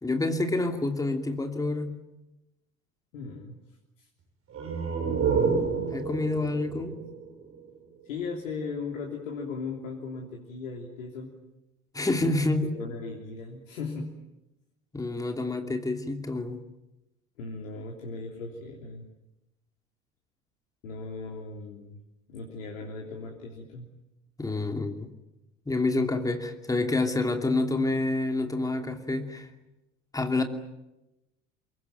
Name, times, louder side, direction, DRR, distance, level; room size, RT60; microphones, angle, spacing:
voice 1, 0.0-2.0 5.9-6.9 11.9-12.6 14.9-16.6 24.4-25.1 25.7-29.5 30.1-30.4, left 2 dB, 10° left, 5 dB, 2.7 m, -28 dB
voice 2, 3.1-3.6 4.0-4.1 6.9-7.0 8.0-11.3 12.4-12.5 12.7-14.1 17.4-19.1 20.8-22.0 22.3-23.9, left 4 dB, 65° left, 0 dB, 3.2 m, -37 dB
sound 1, 4.5-8.0, right 5 dB, 35° right, 7.7 m, -29 dB
26.0 x 22.5 x 9.2 m, 0.95 s
figure-of-eight pair, 75°, 40 cm